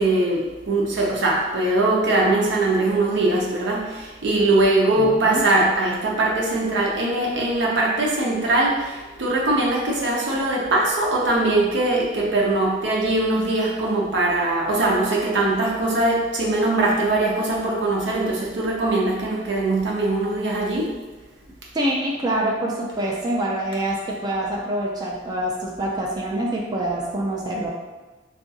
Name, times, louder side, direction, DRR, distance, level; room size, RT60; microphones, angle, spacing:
voice 1, 0.0-20.9, right 2 dB, 85° right, -3 dB, 0.6 m, -21 dB
voice 2, 4.9-5.4 21.7-27.7, right 1 dB, 25° right, -2 dB, 0.3 m, -25 dB
3.5 x 2.4 x 2.6 m, 1.2 s
head